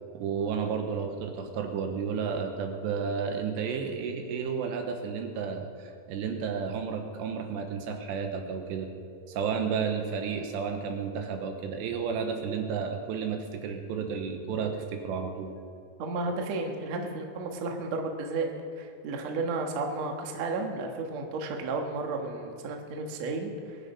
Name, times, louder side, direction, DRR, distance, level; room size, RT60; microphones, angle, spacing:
voice 1, 0.1-15.5, right 6 dB, 80° right, 4 dB, 3.3 m, -32 dB
voice 2, 16.0-18.5 18.8-23.8, right 3 dB, 55° right, 2 dB, 2.0 m, -33 dB
22.0 x 10.0 x 5.5 m, 2.2 s
omnidirectional pair, 5.0 m